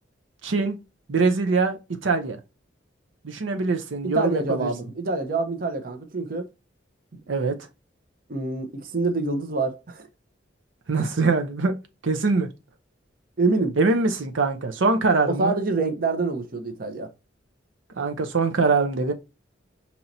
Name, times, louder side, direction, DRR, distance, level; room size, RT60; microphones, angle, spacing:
voice 1, 0.4-0.8 1.1-2.4 3.2-4.7 7.3-7.5 10.9-11.7 12.0-12.5 13.8-15.5 18.0-19.1, right 4 dB, 80° right, 0.7 m, -23 dB
voice 2, 4.0-6.5 8.3-10.1 13.4-13.8 15.3-17.1, right 3 dB, 50° right, 0.8 m, -26 dB
5.5 x 3.0 x 2.6 m
head